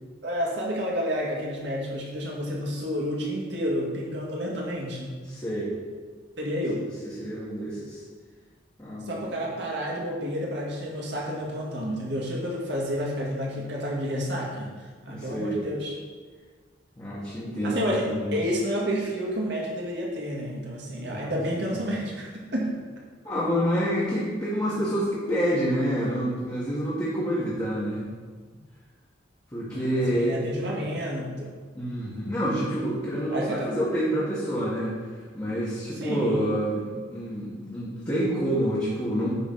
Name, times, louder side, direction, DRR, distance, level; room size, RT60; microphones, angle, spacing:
voice 1, 0.2-5.2 6.4-6.8 9.1-14.7 15.0-15.9 17.6-22.8 29.7-31.5 33.3-33.7 36.0-36.5, equal, 65° right, -3 dB, 2.1 m, -30 dB
voice 2, 5.3-5.7 6.8-8.0 8.8-9.4 15.1-15.6 17.0-18.4 21.0-21.2 21.7-21.8 23.2-28.0 29.5-30.4 31.7-34.9 35.3-39.3, equal, 20° left, -9 dB, 1.7 m, -28 dB
9.5 x 4.2 x 5.7 m, 1.5 s
head